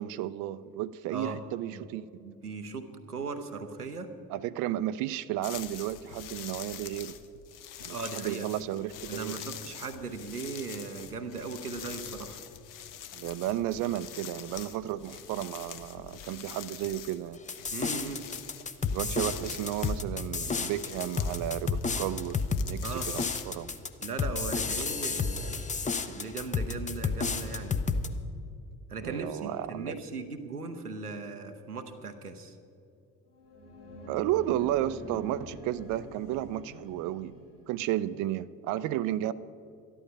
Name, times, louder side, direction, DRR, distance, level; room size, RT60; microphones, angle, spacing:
voice 1, 0.0-2.2 4.3-7.2 7.8-9.4 13.1-17.4 18.9-23.7 29.0-30.0 34.1-37.4 37.7-39.3, right 13 dB, 45° right, 15 dB, 0.5 m, -33 dB
voice 2, 2.2-4.1 7.9-8.5 9.1-12.4 17.7-18.2 22.8-23.1 24.0-25.6 26.1-27.8 28.9-32.6, right 4 dB, 90° right, 7 dB, 0.7 m, -38 dB
sound 1, 5.4-23.4, left 10 dB, 45° left, 0.9 m, -45 dB
sound 2, 17.5-28.1, left 4 dB, 15° left, 0.7 m, -31 dB
sound 3, 33.3-37.9, left 1 dB, 80° left, 1.7 m, -46 dB
13.0 x 11.5 x 5.6 m, 2.6 s
figure-of-eight pair, 50°, 45 cm